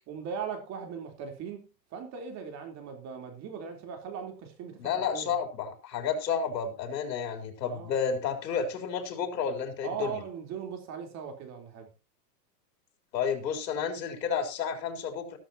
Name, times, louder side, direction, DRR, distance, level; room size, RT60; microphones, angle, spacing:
voice 1, 0.1-5.3 7.6-8.0 9.8-11.9, right 7 dB, 30° right, 3.5 m, -39 dB
voice 2, 4.8-10.2 13.1-15.4, left 6 dB, 75° left, 3.9 m, -31 dB
14.5 x 13.5 x 2.8 m
supercardioid pair, 140°, 50 cm